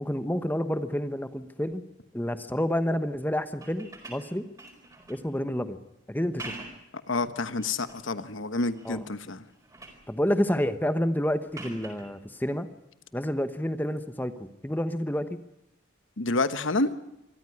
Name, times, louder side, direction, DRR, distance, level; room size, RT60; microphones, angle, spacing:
voice 1, 0.0-1.8 2.1-4.5 5.1-5.8 6.1-6.5 8.8-9.0 10.1-12.7 13.1-15.4, equal, 10° left, 11 dB, 1.0 m, -29 dB
sound 1, 3.5-5.3 6.2-6.9 7.4-8.1 8.6-9.0 9.4-10.1 11.5-12.1 13.8-14.0, right 2 dB, 15° right, 4.6 m, -45 dB
voice 2, 7.1-9.4 16.2-16.9, left 2 dB, 80° left, 12 dB, 1.2 m, -28 dB
25.0 x 14.5 x 9.8 m, 0.89 s
head